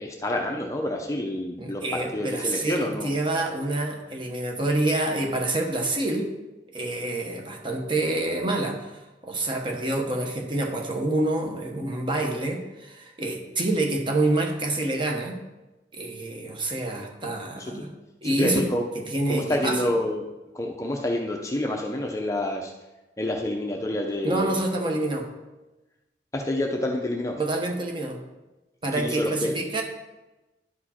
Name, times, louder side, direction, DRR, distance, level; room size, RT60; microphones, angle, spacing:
voice 1, 0.0-3.1 17.7-17.9 18.4-18.8 19.3-20.3 20.5-22.7 23.2-24.6 26.3-27.4 29.0-29.6, left 1 dB, 15° left, 1 dB, 0.6 m, -28 dB
voice 2, 1.6-6.3 6.7-15.4 15.9-17.9 18.2-18.7 18.9-20.0 24.2-25.3 27.4-28.2 28.8-29.8, right 2 dB, 25° right, 2 dB, 1.0 m, -27 dB
11.0 x 4.9 x 4.3 m, 1.1 s
head